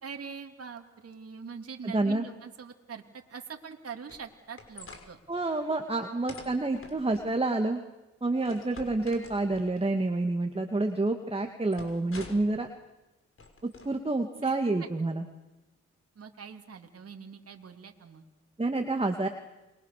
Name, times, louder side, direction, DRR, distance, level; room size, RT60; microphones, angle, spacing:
voice 1, 0.0-5.2 14.4-14.9 16.1-18.2, right 6 dB, 50° right, 3 dB, 2.9 m, -43 dB
voice 2, 1.8-2.3 5.3-7.8 8.2-12.7 13.6-15.3 18.6-19.3, right 2 dB, 20° right, 5 dB, 2.5 m, -28 dB
sound 1, 4.1-5.1 6.3-7.4 8.5-9.8 11.7-12.6 13.4-13.9, left 3 dB, 45° left, 5.6 m, -47 dB
29.0 x 22.5 x 6.9 m, 1.0 s
supercardioid pair, 55°, 30 cm